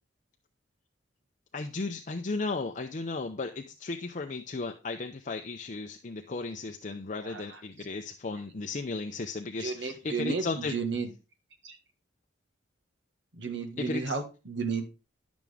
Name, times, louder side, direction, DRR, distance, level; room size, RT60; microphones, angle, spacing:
voice 1, 1.5-10.8 13.8-14.2, left 3 dB, 40° left, 5 dB, 0.6 m, -35 dB
voice 2, 7.2-7.6 9.6-11.1 11.6-11.8 13.4-14.8, right 4 dB, 65° right, 4 dB, 1.6 m, -33 dB
11.0 x 6.1 x 3.5 m, 0.31 s
head